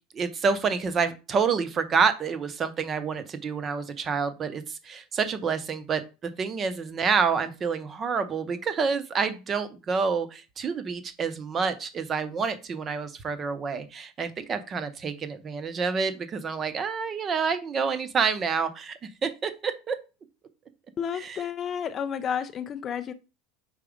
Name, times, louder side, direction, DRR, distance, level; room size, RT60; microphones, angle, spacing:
voice 1, 0.1-20.0 21.1-21.4, right 5 dB, 20° right, 0.6 m, -28 dB
voice 2, 21.0-23.1, left 8 dB, 25° left, 0.4 m, -31 dB
4.8 x 4.0 x 5.0 m
supercardioid pair, 165°, 0 cm